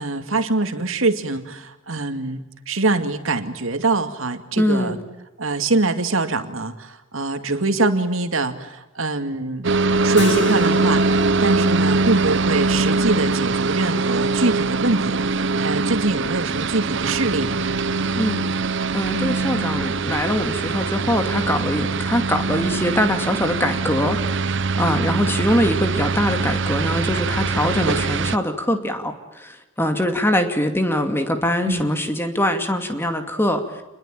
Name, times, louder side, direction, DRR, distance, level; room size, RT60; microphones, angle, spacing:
voice 1, 0.0-5.0 5.4-9.7 10.0-17.6 31.6-31.9, right 2 dB, 80° right, 8 dB, 2.3 m, -24 dB
voice 2, 4.6-5.0 18.1-18.5 18.9-33.6, left 1 dB, 10° left, 6 dB, 2.6 m, -23 dB
sound 1, 9.6-28.4, right 3 dB, 65° right, 0.9 m, -22 dB
Keyboard (musical), 10.2-15.0, left 3 dB, 60° left, 1.1 m, -34 dB
28.0 x 21.5 x 9.0 m, 1.0 s
head